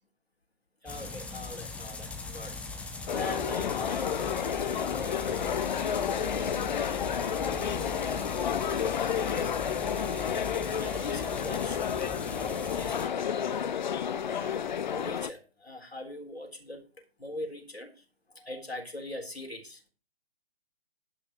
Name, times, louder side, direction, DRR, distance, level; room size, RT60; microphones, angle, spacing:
voice 1, 0.8-2.6 3.1-9.4 9.8-10.5 10.8-11.8 12.3-16.8 17.2-19.8, left 1 dB, 90° left, 3 dB, 3.7 m, -43 dB
sound 1, 0.9-13.1, left 3 dB, 5° left, 0.9 m, -40 dB
sound 2, 3.1-15.3, left 8 dB, 50° left, 0.7 m, -31 dB
11.5 x 5.9 x 6.3 m, 0.34 s
figure-of-eight pair, 130°, 30 cm